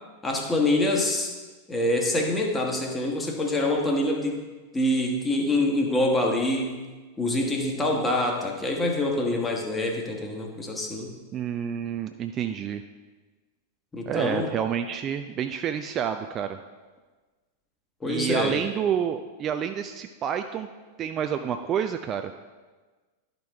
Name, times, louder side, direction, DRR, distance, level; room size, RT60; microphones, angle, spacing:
voice 1, 0.2-1.3 1.7-4.4 4.7-6.8 7.2-11.2 13.9-14.5 18.0-18.6, left 1 dB, 10° left, 1 dB, 1.2 m, -25 dB
voice 2, 11.3-12.8 14.1-16.6 18.1-20.7 21.0-22.3, right 8 dB, 30° right, 7 dB, 0.3 m, -29 dB
11.5 x 5.2 x 3.4 m, 1.3 s
figure-of-eight pair, 90°, 0 cm